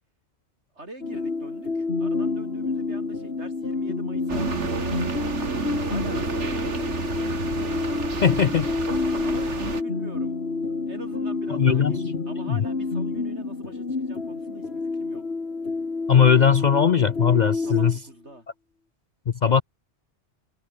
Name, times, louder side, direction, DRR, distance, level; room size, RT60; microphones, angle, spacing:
voice 1, 0.7-4.9 5.9-6.8 9.2-10.3 10.9-15.2 17.6-18.5, right 1 dB, 70° right, 6.6 m, -43 dB
sound 1, 1.0-18.0, left 3 dB, 65° left, 2.6 m, -29 dB
sound 2, 4.3-9.8, right 4 dB, 90° right, 2.4 m, -30 dB
voice 2, 8.2-8.7 11.5-12.6 16.1-18.0 19.3-19.6, left 7 dB, 50° left, 0.6 m, -20 dB
omnidirectional pair, 1.2 m